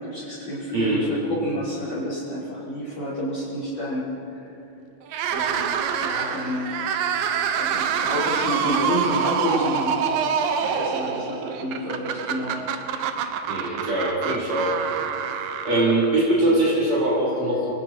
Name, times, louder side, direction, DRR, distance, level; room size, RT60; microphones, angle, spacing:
voice 1, 0.0-4.0 5.3-6.8 7.5-10.0 10.6-12.6, equal, 35° left, -10 dB, 6.2 m, -29 dB
voice 2, 0.7-1.1 10.6-10.8 13.5-14.9 15.6-17.7, right 1 dB, 50° right, -6 dB, 5.5 m, -22 dB
sound 1, 5.1-16.4, right 7 dB, 85° right, 2.9 m, -26 dB
29.0 x 20.0 x 6.1 m, 3.0 s
omnidirectional pair, 3.9 m